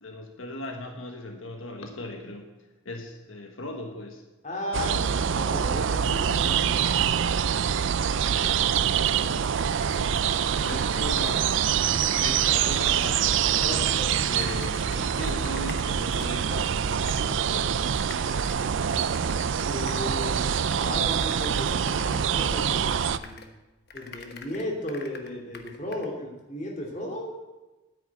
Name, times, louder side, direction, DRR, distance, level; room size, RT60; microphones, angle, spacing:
voice 1, 0.0-2.5 2.8-4.2 8.9-11.5 11.8-13.7 14.2-17.7, left 2 dB, 85° left, 3 dB, 1.5 m, -38 dB
voice 2, 4.4-5.0 5.4-6.9 13.6-14.1 19.7-20.5 20.8-23.4 23.9-27.4, left 1 dB, 40° left, 0 dB, 2.9 m, -35 dB
sound 1, 4.7-23.2, right 8 dB, 70° right, 0.4 m, -25 dB
sound 2, 7.8-7.9 8.2-10.9 11.2-16.6 17.1-17.4 17.9-23.6 23.9-26.1, left 4 dB, 55° left, 1.2 m, -46 dB
9.9 x 9.2 x 8.4 m, 1.1 s
head